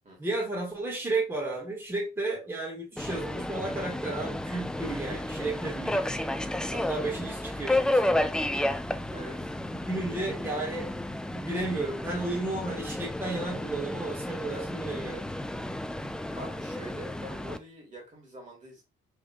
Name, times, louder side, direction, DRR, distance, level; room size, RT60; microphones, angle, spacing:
voice 1, 0.2-6.1 6.7-8.3 9.8-10.9 11.3-15.2, right 2 dB, 10° right, -3 dB, 1.7 m, -33 dB
Subway metro underground, 3.0-17.6, left 1 dB, 5° left, 0.3 m, -32 dB
voice 2, 9.1-9.5 16.3-18.8, right 1 dB, 40° right, -1 dB, 2.3 m, -44 dB
3.6 x 3.6 x 2.3 m, 0.26 s
cardioid pair, 90°, 20 cm